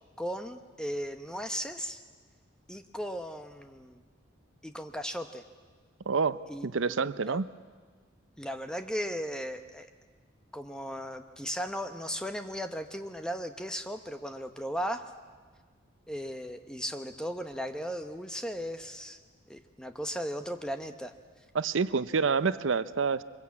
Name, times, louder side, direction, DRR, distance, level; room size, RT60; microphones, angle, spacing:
voice 1, 0.2-2.0 2.7-4.0 4.6-5.4 6.5-7.4 8.4-9.9 10.5-15.1 16.1-19.2 19.5-21.1, equal, 5° left, 7 dB, 1.0 m, -36 dB
voice 2, 6.1-7.4 21.5-23.2, right 5 dB, 75° right, 14 dB, 0.6 m, -28 dB
24.0 x 21.5 x 8.6 m, 1.5 s
head